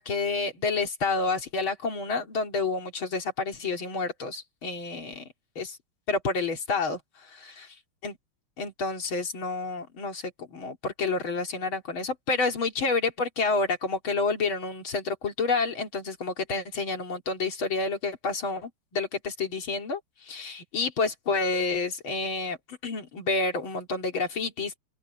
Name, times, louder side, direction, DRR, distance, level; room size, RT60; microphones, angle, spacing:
voice 1, 0.0-5.3 5.6-5.8 6.1-7.0 7.3-7.7 8.0-8.2 8.6-24.8, left 3 dB, 75° left, 3.6 m, -29 dB
open air
omnidirectional pair, 2.3 m